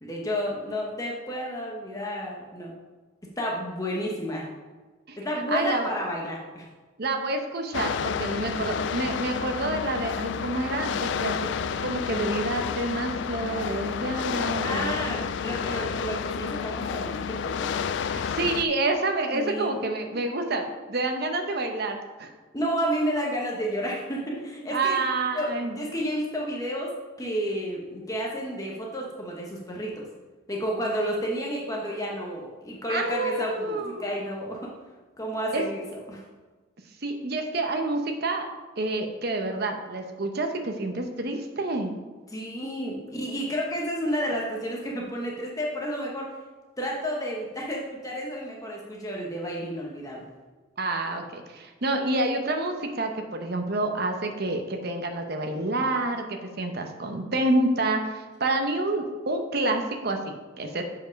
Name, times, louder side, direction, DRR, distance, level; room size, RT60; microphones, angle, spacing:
voice 1, 0.0-2.7 3.4-4.5 5.2-6.7 14.6-17.7 19.3-19.8 22.5-25.0 25.3-30.1 30.5-34.7 35.2-36.2 42.3-46.4 46.8-50.2, equal, 20° left, -2 dB, 1.0 m, -31 dB
voice 2, 5.5-5.9 7.0-11.5 11.8-15.0 15.7-15.8 18.1-22.3 24.7-25.7 32.9-34.1 35.5-35.6 37.0-38.5 38.8-41.9 50.8-60.8, right 2 dB, 55° right, 4 dB, 0.9 m, -28 dB
sound 1, 7.7-18.6, left 6 dB, 65° left, 0.3 m, -30 dB
7.1 x 5.1 x 5.2 m, 1.3 s
head